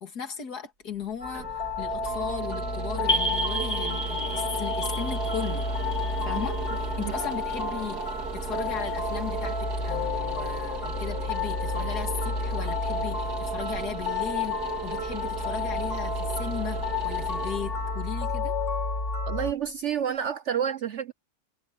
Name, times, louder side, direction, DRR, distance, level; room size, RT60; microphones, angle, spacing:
voice 1, 0.0-5.7 6.2-18.5, left 7 dB, 90° left, 2.7 m, -37 dB
sound 1, 0.9-19.9, right 4 dB, 90° right, 3.8 m, -38 dB
sound 2, 1.2-19.5, left 3 dB, 50° left, 4.4 m, -31 dB
sound 3, 3.1-7.5, equal, 15° left, 1.3 m, -32 dB
voice 2, 19.3-21.1, right 8 dB, 65° right, 0.8 m, -29 dB
omnidirectional pair, 1.6 m